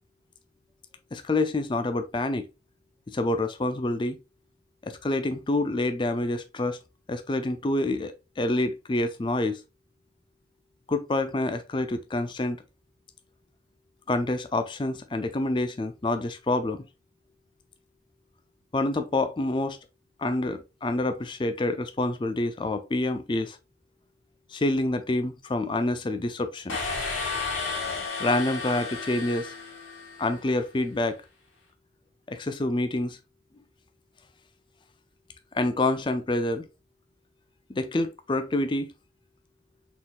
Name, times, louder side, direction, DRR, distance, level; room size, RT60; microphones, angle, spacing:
voice 1, 1.1-2.5 3.1-4.2 4.8-6.8 7.1-9.6 10.9-12.6 14.1-16.8 18.7-19.8 20.2-23.6 24.5-26.8 28.2-29.5 30.2-31.2 32.3-33.2 35.5-36.7 37.7-38.9, left 2 dB, 25° left, 0.4 m, -27 dB
sound 1, 26.7-30.5, left 4 dB, 85° left, 1.8 m, -33 dB
4.2 x 3.9 x 2.5 m
head